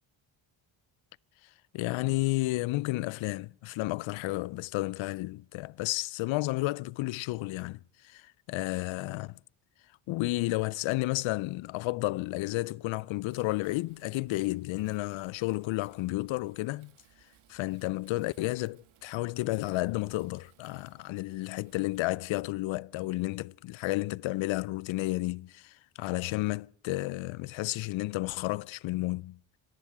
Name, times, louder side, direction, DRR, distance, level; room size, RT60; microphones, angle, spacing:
voice 1, 1.7-9.3 10.1-16.9 17.5-29.4, left 20 dB, 70° left, 0.5 m, -32 dB
Wind, 13.3-22.2, right 11 dB, 85° right, 1.7 m, -65 dB
27.0 x 10.5 x 4.8 m
cardioid pair, 120°, 48 cm